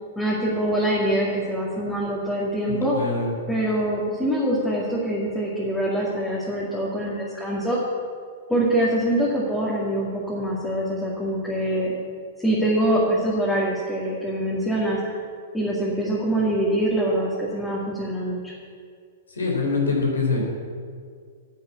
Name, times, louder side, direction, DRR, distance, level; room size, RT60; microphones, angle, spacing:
voice 1, 0.2-3.0 3.5-7.8 8.5-11.9 12.4-15.2 15.5-18.5, right 1 dB, 5° left, -6 dB, 2.3 m, -24 dB
voice 2, 2.7-3.3 19.3-20.4, left 4 dB, 80° left, -1 dB, 3.6 m, -24 dB
9.9 x 7.0 x 8.2 m, 2.1 s
figure-of-eight pair, 110°, 0 cm